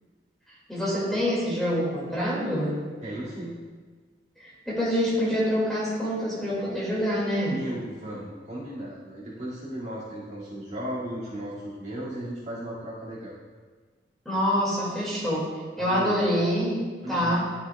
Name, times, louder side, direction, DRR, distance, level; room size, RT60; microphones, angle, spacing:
voice 1, 0.7-2.8 4.4-7.6 14.2-15.4 15.8-16.8 17.1-17.4, equal, ahead, -8 dB, 2.6 m, -26 dB
voice 2, 3.0-3.6 7.5-13.3 15.8-16.2 17.0-17.5, right 1 dB, 40° right, -9 dB, 2.6 m, -36 dB
12.5 x 6.9 x 2.5 m, 1.5 s
head